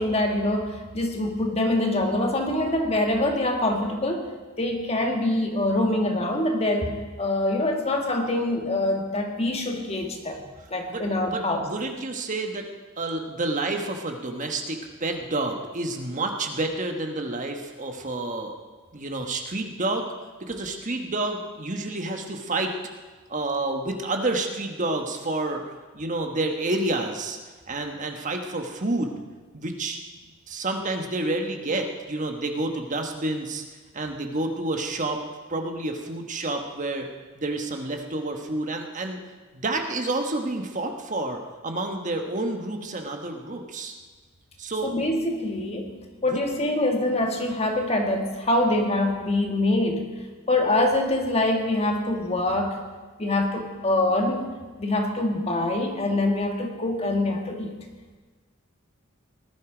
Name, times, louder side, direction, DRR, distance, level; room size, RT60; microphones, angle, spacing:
voice 1, 0.0-4.3 4.6-10.4 10.7-11.6 44.8-45.9 46.2-50.1 50.5-52.8 53.2-54.5 54.8-57.7, left 1 dB, 30° left, 3 dB, 1.8 m, -24 dB
voice 2, 10.9-12.7 13.0-18.5 18.9-20.1 20.4-22.7 23.3-27.4 27.7-29.1 29.5-30.0 30.5-33.6 33.9-35.2 35.5-37.1 37.4-39.2 39.5-43.9 44.6-44.9 46.3-46.4, right 2 dB, 35° right, 4 dB, 1.3 m, -29 dB
19.5 x 12.5 x 5.0 m, 1.3 s
head